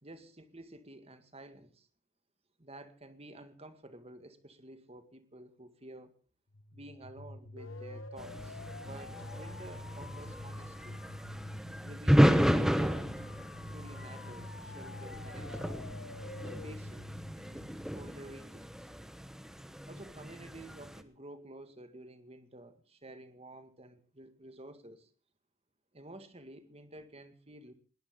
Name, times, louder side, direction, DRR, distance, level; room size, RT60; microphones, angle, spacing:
voice 1, 0.0-1.9 2.6-6.2 6.7-11.0 11.7-12.4 12.7-13.1 13.7-15.8 16.4-17.7 17.9-18.9 19.9-25.1 25.9-27.7, right 1 dB, 30° right, 10 dB, 2.0 m, -51 dB
sound 1, 6.5-18.4, left 1 dB, 75° left, 1.4 m, -46 dB
sound 2, 8.2-21.0, equal, ahead, 1.1 m, -32 dB
20.5 x 18.5 x 3.8 m, 0.37 s
head